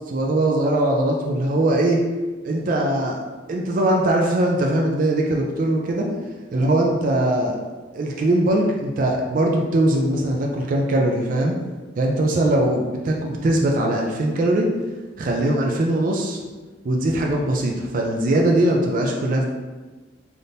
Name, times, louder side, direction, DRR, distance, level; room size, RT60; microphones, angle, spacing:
voice 1, 0.1-2.0 2.4-3.2 3.5-6.1 6.5-7.6 7.9-11.6 12.0-14.7 15.2-16.4 16.8-19.5, right 1 dB, 45° right, 0 dB, 0.3 m, -21 dB
3.5 x 2.6 x 2.7 m, 1.3 s
head